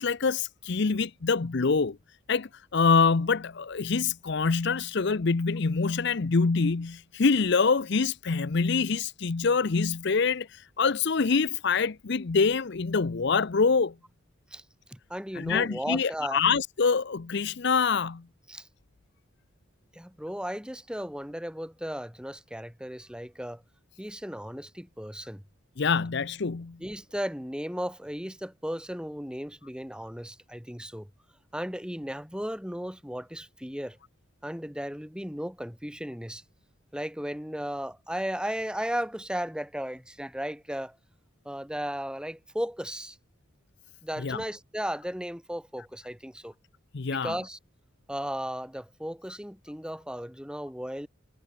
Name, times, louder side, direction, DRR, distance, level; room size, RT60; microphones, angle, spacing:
voice 1, 0.0-2.0 2.3-13.9 15.4-18.2 25.8-26.8 44.2-44.4 46.9-47.3, left 5 dB, 60° left, 0.6 m, -25 dB
voice 2, 14.9-16.4 18.5-18.7 19.9-23.6 24.0-25.4 26.8-31.1 31.5-34.0 34.4-36.4 36.9-41.0 41.4-43.2 44.0-46.5 47.1-47.6 48.1-51.1, equal, 5° right, 4.8 m, -35 dB
head